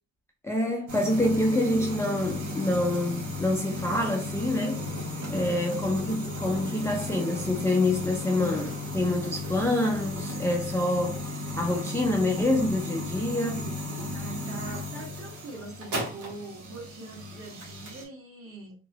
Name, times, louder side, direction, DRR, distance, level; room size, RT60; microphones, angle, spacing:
voice 1, 0.4-4.9 5.3-11.2 11.6-13.7, left 1 dB, 10° left, 0.5 m, -26 dB
sound 1, 0.9-18.0, left 2 dB, 80° right, 1.0 m, -35 dB
voice 2, 14.1-18.7, right 2 dB, 50° right, 1.5 m, -43 dB
2.9 x 2.1 x 2.8 m
cardioid pair, 90°, 30 cm